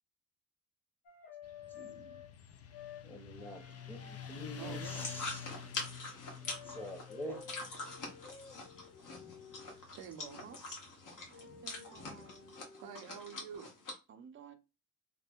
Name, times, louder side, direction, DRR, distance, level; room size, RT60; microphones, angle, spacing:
sound 1, 1.1-2.3 2.7-3.1 3.4-5.2 6.4-9.8 11.3-13.1, left 7 dB, 90° left, 1.1 m, -53 dB
Motorcycle, 1.4-12.5, left 8 dB, 40° left, 0.5 m, -50 dB
voice 1, 1.7-2.2 3.0-5.5 6.6-7.4, equal, 5° left, 0.9 m, -46 dB
voice 2, 4.6-5.1 9.7-10.4 12.8-13.8, right 7 dB, 70° right, 0.7 m, -48 dB
sound 2, 5.0-13.9, left 3 dB, 55° left, 1.4 m, -45 dB
voice 3, 11.3-12.5 14.1-14.5, right 6 dB, 30° right, 0.6 m, -55 dB
3.3 x 2.1 x 3.6 m
cardioid pair, 80°, 37 cm